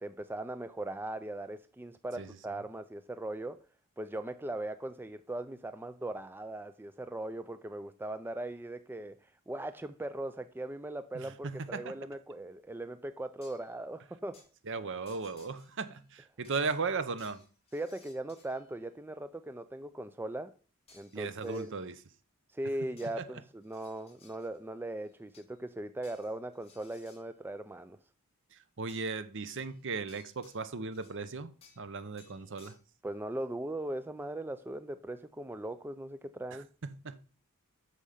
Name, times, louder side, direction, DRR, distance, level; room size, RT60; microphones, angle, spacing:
voice 1, 0.0-3.6 4.0-9.2 9.5-14.5 17.7-20.5 20.9-21.7 22.5-28.0 33.0-36.7, right 1 dB, 10° right, 0.4 m, -39 dB
voice 2, 11.1-11.9 14.7-17.4 21.1-21.9 23.2-23.3 28.8-31.5 31.8-32.7 37.0-37.2, right 4 dB, 55° right, 0.8 m, -36 dB
sound 1, 13.4-13.7 14.3-14.5 15.1-16.0 16.4-18.7 20.9-21.7 23.0-23.2 23.6-24.6 25.0-25.6 26.0-27.2 28.9-29.2 29.5-31.2 31.6-31.9 32.2-32.8, left 4 dB, 25° left, 2.6 m, -61 dB
8.4 x 6.4 x 5.6 m
head